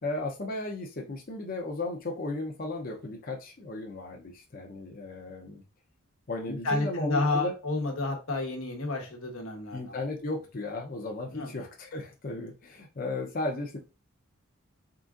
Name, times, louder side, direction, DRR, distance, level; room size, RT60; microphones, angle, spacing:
voice 1, 0.0-5.6 6.3-7.5 9.7-13.8, left 2 dB, 45° left, 1 dB, 0.6 m, -35 dB
voice 2, 6.5-10.0 11.3-11.5, left 2 dB, 90° left, 3 dB, 1.1 m, -30 dB
3.8 x 3.6 x 2.4 m, 0.29 s
head